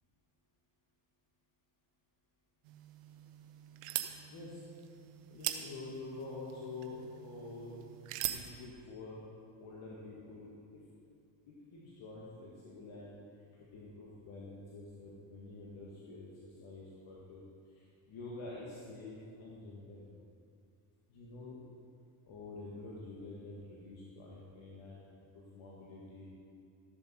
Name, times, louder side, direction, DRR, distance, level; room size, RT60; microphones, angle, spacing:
sound 1, 2.6-8.5, right 13 dB, 90° right, 0.8 m, -43 dB
voice 1, 4.3-4.6 5.3-7.8 8.2-9.2 9.6-10.8 11.5-13.2 13.6-17.4 17.7-20.1 21.1-21.6 22.3-26.3, left 3 dB, 70° left, -5 dB, 2.0 m, -48 dB
13.5 x 7.2 x 4.4 m, 2.4 s
supercardioid pair, 65°, 50 cm